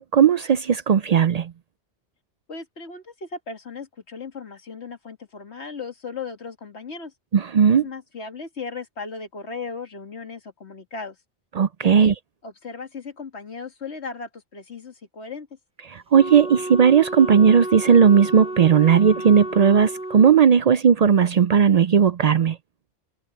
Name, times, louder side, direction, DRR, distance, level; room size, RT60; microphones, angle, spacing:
voice 1, 0.0-1.5 7.3-7.9 11.6-12.1 16.1-22.6, right 7 dB, 65° right, 0.4 m, -16 dB
voice 2, 2.5-7.1 7.7-11.2 11.8-12.2 12.4-15.6, left 4 dB, 65° left, 2.3 m, -36 dB
Wind instrument woodwind instrument, 16.1-20.4, right 1 dB, 5° right, 0.7 m, -32 dB
omnidirectional pair, 1.2 m